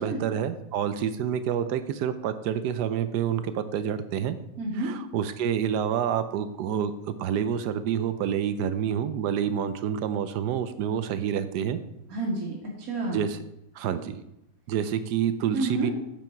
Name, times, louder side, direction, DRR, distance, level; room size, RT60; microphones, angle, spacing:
voice 1, 0.0-4.4 4.7-11.8 13.1-13.4 13.7-14.2 14.7-15.9, right 8 dB, 80° right, 11 dB, 1.2 m, -28 dB
voice 2, 4.6-4.9 12.1-13.3 15.5-15.9, right 2 dB, 55° right, -3 dB, 2.3 m, -29 dB
9.0 x 7.3 x 4.5 m, 0.82 s
omnidirectional pair, 1.8 m